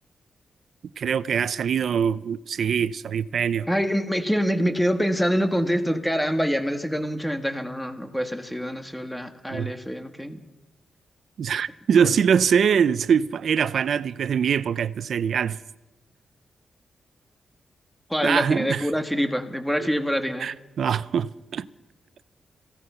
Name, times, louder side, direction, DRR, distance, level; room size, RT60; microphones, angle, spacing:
voice 1, 1.0-3.7 9.5-9.7 11.4-15.6 18.2-18.9 20.4-21.7, right 7 dB, 65° right, 0.7 m, -23 dB
voice 2, 3.7-10.4 12.0-12.1 18.1-20.5, equal, 5° left, 1.7 m, -25 dB
27.5 x 16.5 x 5.7 m
wide cardioid pair, 130°, 0 cm